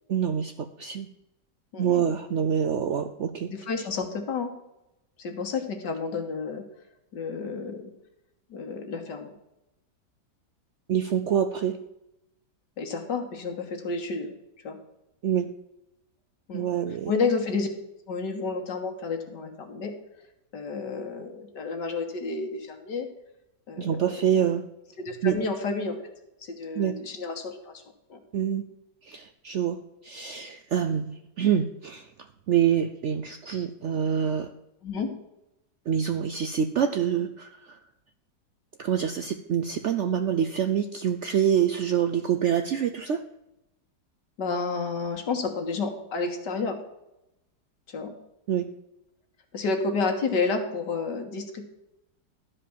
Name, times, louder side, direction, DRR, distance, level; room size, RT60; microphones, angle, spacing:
voice 1, 0.1-1.1 1.8-3.5 10.9-11.8 15.2-15.5 16.5-17.1 23.8-24.7 25.2-25.4 26.8-26.9 28.3-28.6 29.0-32.1 32.5-34.5 35.9-37.8 38.8-43.2 48.5-48.7, right 8 dB, 70° right, 8 dB, 0.6 m, -26 dB
voice 2, 1.7-2.0 3.5-4.5 5.2-6.6 7.1-7.8 8.5-9.3 12.8-14.8 16.5-16.7 17.1-17.7 18.1-19.9 20.5-23.1 23.7-24.0 25.0-26.0 26.4-27.8 28.1-28.2 34.8-35.1 44.4-46.8 47.9-48.1 49.5-51.6, left 4 dB, 80° left, 4 dB, 2.1 m, -30 dB
12.0 x 5.1 x 7.1 m, 0.89 s
omnidirectional pair, 1.9 m